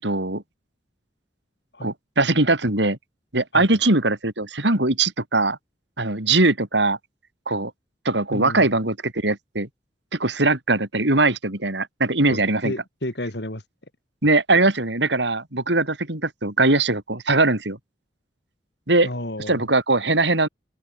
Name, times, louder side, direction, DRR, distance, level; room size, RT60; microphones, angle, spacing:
voice 1, 0.0-0.4 1.8-3.0 3.3-5.6 6.0-7.0 7.5-7.7 8.0-9.7 10.1-12.7 14.2-17.8 18.9-19.1 19.5-20.5, right 2 dB, 75° right, 4.6 m, -21 dB
voice 2, 8.3-8.7 12.3-12.4 12.6-13.6 19.0-19.6, left 1 dB, 65° left, 4.3 m, -31 dB
open air
head